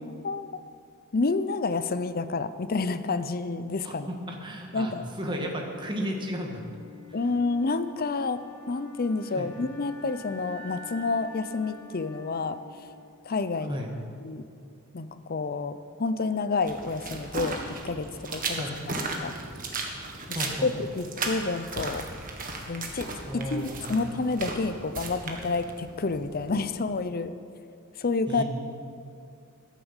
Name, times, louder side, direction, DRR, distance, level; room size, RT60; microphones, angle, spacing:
voice 1, 1.1-4.1 4.7-5.0 7.1-12.6 13.2-13.8 14.2-14.4 14.9-18.6 19.2-19.3 20.6-22.0 22.7-27.3 28.0-28.4, left 3 dB, 45° left, 12 dB, 0.6 m, -29 dB
voice 2, 3.8-6.6 9.4-9.5 13.7-13.9 18.5-18.7 20.3-20.7 23.3-24.0 28.3-28.4, equal, 20° right, 1 dB, 1.7 m, -34 dB
Wind instrument woodwind instrument, 5.6-13.6, left 3 dB, 90° left, 1.7 m, -47 dB
sound 1, 16.6-26.6, right 3 dB, 40° right, 1.6 m, -36 dB
12.5 x 10.5 x 7.2 m, 2.4 s
head